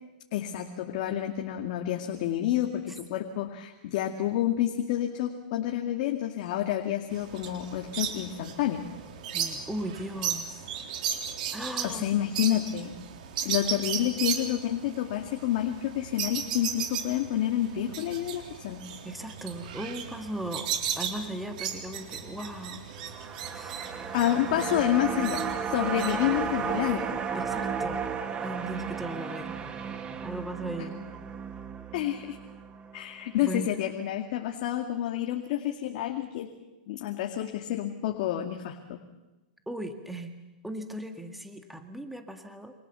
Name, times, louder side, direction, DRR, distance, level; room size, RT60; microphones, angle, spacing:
voice 1, 0.3-8.8 11.8-12.9 13.4-18.8 24.1-27.1 30.8-30.9 31.9-32.4 32.9-36.5 36.9-39.0, left 12 dB, 55° left, 4 dB, 2.2 m, -29 dB
sound 1, 7.1-26.9, right 8 dB, 65° right, 3.8 m, -36 dB
voice 2, 9.3-10.7 11.5-12.1 19.0-20.7 21.0-22.9 23.5-24.0 27.3-28.0 28.4-29.6 30.2-31.0 33.4-33.7 39.7-40.3 40.6-42.7, right 1 dB, ahead, 5 dB, 1.9 m, -37 dB
sound 2, 22.9-33.4 33.7-33.8, right 6 dB, 20° right, 1.9 m, -34 dB
28.5 x 26.0 x 7.0 m, 1.1 s
hypercardioid pair, 145°, 5 cm